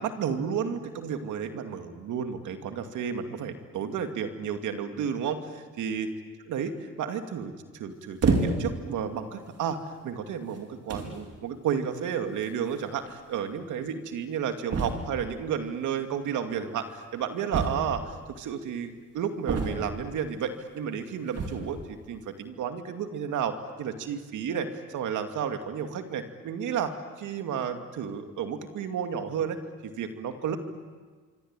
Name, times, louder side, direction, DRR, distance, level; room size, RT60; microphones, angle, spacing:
voice 1, 0.0-6.1 6.5-6.7 7.0-9.8 10.0-29.6 29.8-30.6, right 7 dB, 80° right, 6 dB, 2.6 m, -32 dB
sound 1, 8.2-8.8 9.6-9.7 10.5-10.6 10.9-11.2 12.4-12.5 12.7-12.8 13.1-13.2 14.7-15.2 17.5-18.2 19.5-20.1 21.3-21.8, right 4 dB, 55° right, 4.8 m, -28 dB
26.0 x 25.0 x 9.0 m, 1.4 s
cardioid pair, 90°, 30 cm